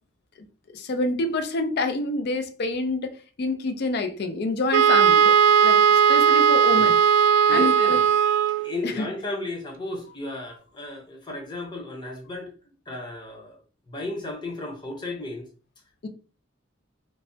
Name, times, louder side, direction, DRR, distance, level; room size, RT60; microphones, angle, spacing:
voice 1, 0.7-7.0 7.5-8.0 8.8-9.1 16.0-16.1, left 2 dB, 55° left, 0.4 m, -27 dB
Wind instrument woodwind instrument, 4.7-8.7, right 7 dB, 80° right, 0.3 m, -17 dB
voice 2, 7.5-8.1 8.5-12.5 12.9-13.6 13.9-15.4, left 2 dB, 25° left, 0.7 m, -34 dB
3.2 x 2.1 x 2.6 m
head